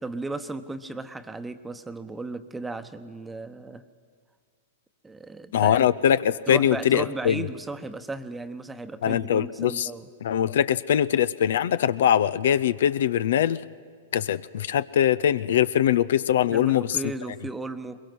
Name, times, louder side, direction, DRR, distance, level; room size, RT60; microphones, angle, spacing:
voice 1, 0.0-3.8 5.0-5.9 6.5-10.1 16.5-18.0, right 2 dB, 10° right, 10 dB, 1.0 m, -35 dB
voice 2, 5.5-7.4 9.0-9.9 10.2-13.6 14.1-17.0, left 10 dB, 70° left, 17 dB, 0.5 m, -22 dB
22.0 x 21.5 x 6.2 m, 2.1 s
hypercardioid pair, 115°, 0 cm